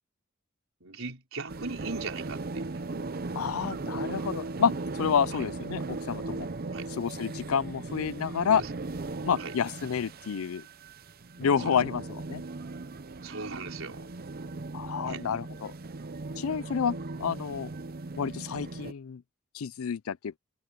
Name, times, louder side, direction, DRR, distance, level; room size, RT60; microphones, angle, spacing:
voice 1, 0.8-2.8 5.3-5.4 6.7-6.9 8.5-8.7 9.4-9.5 11.6-11.8 13.2-14.1 15.0-15.3, right 4 dB, 70° right, 4.9 m, -39 dB
sound 1, 1.5-18.9, right 3 dB, 45° right, 0.7 m, -38 dB
voice 2, 3.4-6.5 7.0-8.6 9.2-10.7 11.4-12.4 14.7-15.7 16.4-17.7 18.2-19.2 19.5-20.4, left 7 dB, 80° left, 0.5 m, -29 dB
head